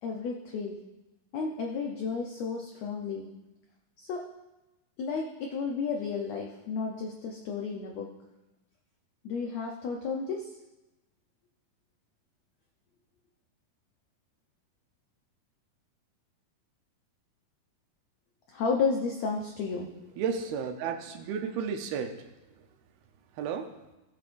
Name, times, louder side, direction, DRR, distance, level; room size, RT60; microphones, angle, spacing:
voice 1, 0.0-0.8 1.3-3.3 4.0-4.3 5.0-8.1 9.2-10.5 18.5-20.2, left 5 dB, 85° left, 1 dB, 1.5 m, -32 dB
voice 2, 20.2-22.1 23.4-23.7, right 6 dB, 85° right, 6 dB, 2.8 m, -32 dB
17.0 x 8.4 x 2.6 m, 1.0 s
omnidirectional pair, 4.3 m